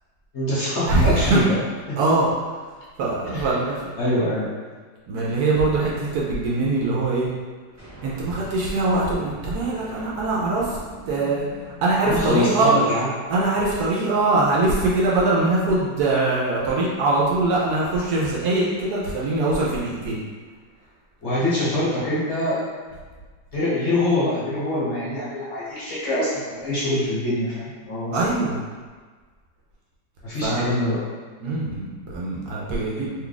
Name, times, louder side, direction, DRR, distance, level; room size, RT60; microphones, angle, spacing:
voice 1, 0.3-1.6 1.9-2.0 3.3-3.4 4.0-4.5 12.0-13.1 21.2-22.6 23.5-28.3 30.2-31.0, left 1 dB, 45° left, -9 dB, 1.0 m, -24 dB
voice 2, 0.9-1.4 2.0-2.3 3.0-3.9 5.1-7.3 8.0-10.8 11.1-12.8 13.3-20.2 28.1-28.6 30.4-30.7 31.4-33.3, right 2 dB, 70° right, -5 dB, 1.0 m, -22 dB
sound 1, 7.8-12.9, right 1 dB, 25° right, 0.4 m, -43 dB
3.1 x 2.3 x 3.8 m, 1.5 s
omnidirectional pair, 2.0 m